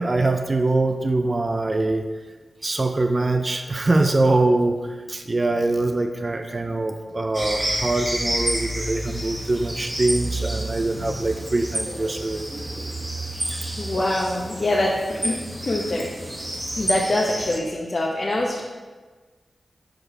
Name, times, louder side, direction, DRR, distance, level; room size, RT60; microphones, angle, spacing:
voice 1, 0.0-2.1 2.6-12.5, right 2 dB, 45° right, 6 dB, 0.5 m, -23 dB
sound 1, 7.3-17.6, right 1 dB, 20° right, 1.3 m, -29 dB
voice 2, 13.8-16.1 16.8-18.6, left 1 dB, 55° left, -3 dB, 0.8 m, -24 dB
5.1 x 4.6 x 4.9 m, 1.4 s
cardioid pair, 45°, 0 cm